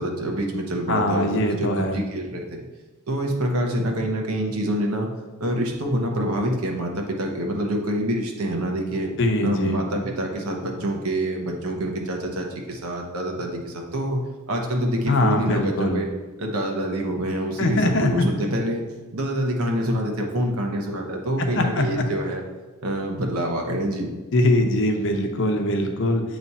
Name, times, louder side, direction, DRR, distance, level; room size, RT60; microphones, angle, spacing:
voice 1, 0.0-2.6 3.1-5.1 5.4-9.1 9.4-14.2 14.5-16.1 16.4-18.8 19.1-22.4 22.8-24.1, right 1 dB, 80° right, 1 dB, 1.0 m, -26 dB
voice 2, 0.9-2.0 9.2-9.8 15.1-16.0 17.6-18.3 21.4-22.1 24.3-26.2, left 1 dB, 60° left, 3 dB, 0.8 m, -22 dB
8.1 x 3.2 x 4.2 m, 1.2 s
head